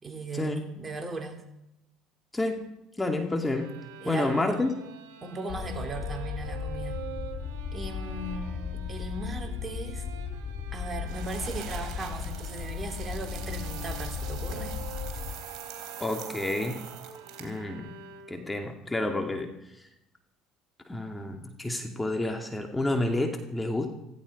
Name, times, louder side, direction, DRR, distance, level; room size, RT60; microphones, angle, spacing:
voice 1, 0.0-1.4 4.0-4.5 5.2-7.0 7.7-10.1 10.7-14.8, right 3 dB, 30° right, 4 dB, 3.4 m, -37 dB
voice 2, 2.3-2.7 3.0-3.7 4.1-4.7 16.0-16.8 17.4-17.9 18.3-19.5 20.9-23.9, left 2 dB, 15° left, 4 dB, 2.5 m, -29 dB
sound 1, 3.5-18.6, right 6 dB, 80° right, 3.4 m, -46 dB
sound 2, 5.5-15.3, left 6 dB, 50° left, 1.8 m, -36 dB
sound 3, 11.1-17.6, right 8 dB, 60° right, 3.6 m, -43 dB
17.0 x 15.5 x 5.3 m, 0.87 s
hypercardioid pair, 70°, 0 cm